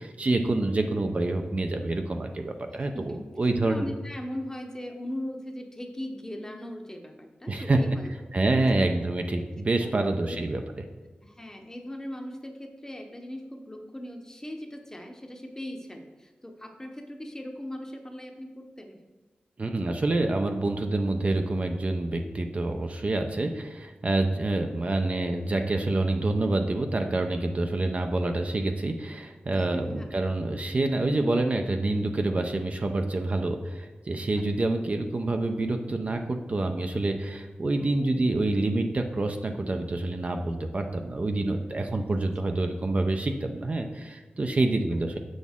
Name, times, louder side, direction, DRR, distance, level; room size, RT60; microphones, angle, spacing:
voice 1, 0.0-3.9 7.5-7.8 8.3-10.6 19.6-45.2, right 2 dB, 40° right, 5 dB, 0.5 m, -27 dB
voice 2, 3.6-8.1 8.4-8.5 9.3-9.5 9.8-10.4 11.2-19.0 24.4-24.5 29.5-30.1 34.3-34.6 37.8-38.2 42.2-42.3, left 1 dB, 15° left, 4 dB, 0.8 m, -39 dB
7.1 x 6.3 x 3.6 m, 1.3 s
wide cardioid pair, 105°, 3 cm